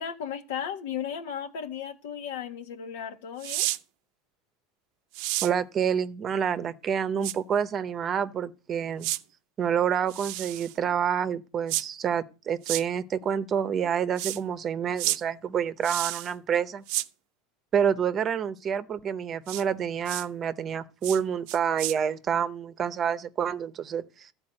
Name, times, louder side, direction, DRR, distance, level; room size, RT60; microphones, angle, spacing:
voice 1, 0.0-3.7, left 8 dB, 85° left, 1.6 m, -35 dB
sound 1, 3.4-3.8 5.1-5.5 7.2-7.3 9.0-9.2 10.1-10.7 11.7-11.8 12.6-12.8 14.2-14.4 15.0-15.2 15.8-16.3 16.9-17.1 19.5-19.6 20.0-20.2 21.0-21.2 21.5-21.9, right 17 dB, 65° right, 0.5 m, -30 dB
voice 2, 5.4-9.1 9.6-16.8 17.7-24.3, right 8 dB, 30° right, 0.7 m, -28 dB
13.5 x 4.7 x 8.8 m
supercardioid pair, 145°, 0 cm